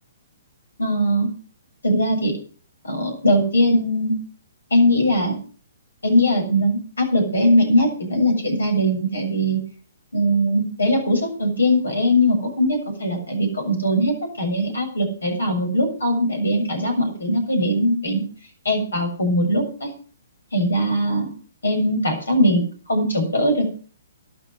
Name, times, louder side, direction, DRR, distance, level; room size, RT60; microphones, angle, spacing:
voice 1, 0.8-1.3 1.8-2.3 2.8-4.1 4.7-5.4 6.0-9.6 10.1-18.2 18.7-19.9 20.5-21.3 21.6-22.6 22.9-23.7, equal, 80° left, 5 dB, 7.0 m, -20 dB
12.5 x 11.5 x 6.6 m, 0.41 s
figure-of-eight pair, 130°, 0 cm